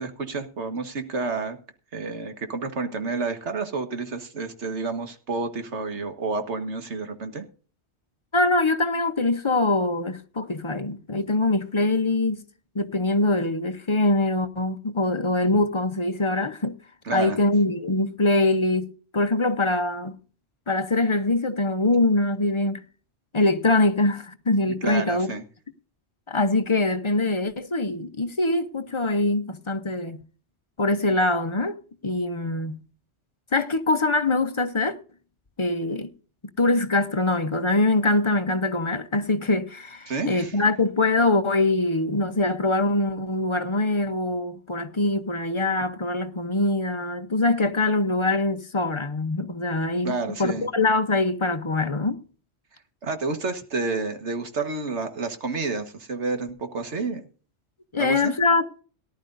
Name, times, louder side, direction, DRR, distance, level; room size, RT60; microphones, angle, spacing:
voice 1, 0.0-1.6 1.9-7.4 17.0-17.4 24.7-25.4 40.1-40.6 50.0-50.7 53.0-57.2 58.0-58.3, right 3 dB, 85° right, 1.8 m, -30 dB
voice 2, 8.3-12.4 12.7-16.8 17.1-20.2 20.7-22.8 23.3-25.3 26.3-30.2 30.8-31.8 32.0-32.8 33.5-35.0 35.6-36.1 36.4-52.2 57.9-58.7, left 2 dB, 30° left, 0.9 m, -23 dB
18.5 x 11.5 x 2.6 m
omnidirectional pair, 1.1 m